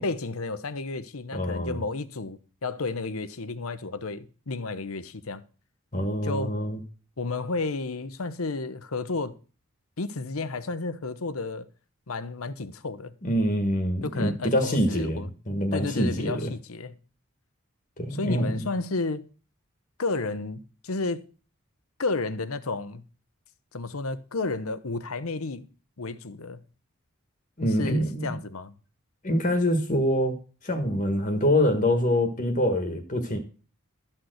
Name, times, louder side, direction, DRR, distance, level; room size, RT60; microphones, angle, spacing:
voice 1, 0.0-5.4 6.2-6.6 7.2-9.3 10.0-11.7 12.1-13.1 14.0-15.3 15.7-17.0 18.1-19.2 20.0-21.2 22.0-23.0 23.7-25.7 26.0-26.6 27.7-28.7, left 3 dB, 85° left, 0.9 m, -32 dB
voice 2, 1.3-1.8 5.9-6.8 13.2-16.5 18.0-18.5 27.6-28.3 29.2-30.3 30.6-33.4, equal, 35° left, 1.4 m, -25 dB
13.0 x 4.5 x 7.9 m
head